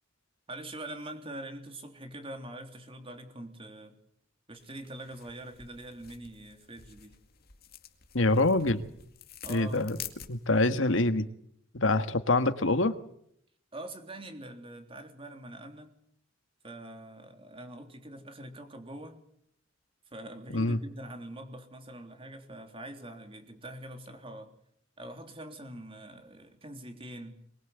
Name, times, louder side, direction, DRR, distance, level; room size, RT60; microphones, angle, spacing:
voice 1, 0.5-4.0 4.5-7.1 9.4-9.9 13.7-15.9 16.6-19.2 20.1-24.5 25.0-27.4, right 1 dB, 30° right, 5 dB, 3.5 m, -44 dB
sound 1, 4.6-10.7, left 9 dB, 55° left, 2.2 m, -48 dB
voice 2, 8.1-8.8 9.5-10.0 10.3-11.2 11.8-12.9 20.5-20.8, left 2 dB, 90° left, 10 dB, 1.7 m, -25 dB
23.5 x 22.0 x 8.2 m, 0.70 s
head